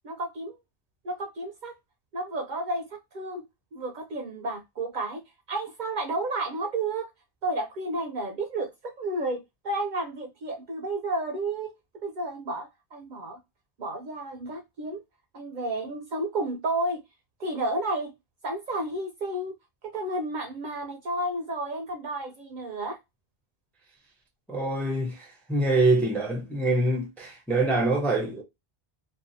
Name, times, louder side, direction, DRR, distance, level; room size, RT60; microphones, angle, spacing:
voice 1, 0.0-0.5 1.0-1.7 2.1-3.4 3.7-5.2 5.5-7.1 7.4-13.4 13.8-15.0 15.3-17.0 17.4-18.1 18.4-19.5 19.8-23.0, right 2 dB, 55° right, 0.6 m, -31 dB
voice 2, 24.5-28.4, right 2 dB, ahead, 0.4 m, -25 dB
2.6 x 2.2 x 2.5 m
omnidirectional pair, 1.0 m